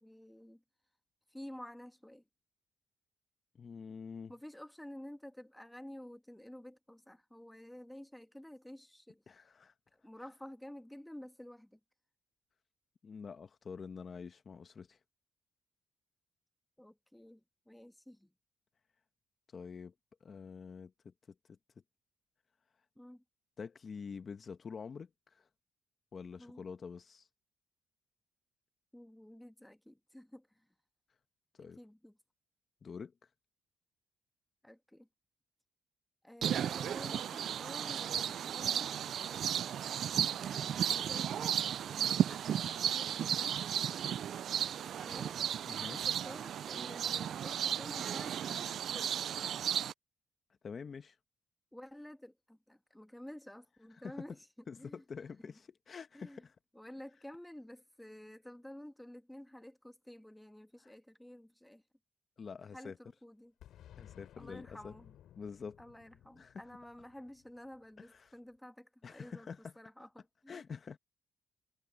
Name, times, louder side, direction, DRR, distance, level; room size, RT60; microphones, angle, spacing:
voice 1, 0.0-0.6 1.3-2.2 4.3-9.2 9.9-11.8 16.8-18.3 23.0-23.2 26.4-26.6 28.9-30.5 31.6-32.2 34.6-35.1 36.2-38.9 40.2-43.7 45.0-45.4 45.8-49.2 51.7-54.5 54.8-55.0 56.1-56.4 56.7-61.8 62.7-63.5 64.4-65.1 65.8-69.5 69.8-70.6, left 1 dB, 5° left, 1.5 m, -51 dB
voice 2, 3.5-4.3 9.3-9.7 13.0-15.0 19.5-19.9 20.2-21.1 21.5-21.6 23.6-25.5 26.1-27.3 31.6-31.8 32.8-33.1 45.7-46.0 50.6-51.2 54.0-54.2 54.7-56.5 60.8-60.9 62.4-63.0 64.0-64.9 65.4-65.8 66.4-66.6 68.0-68.3 69.0-69.7 70.5-71.0, left 5 dB, 45° left, 1.1 m, -46 dB
sound 1, 36.4-49.9, right 9 dB, 65° right, 0.3 m, -34 dB
Boom, 63.6-68.3, left 11 dB, 75° left, 4.4 m, -58 dB
cardioid pair, 90°, 0 cm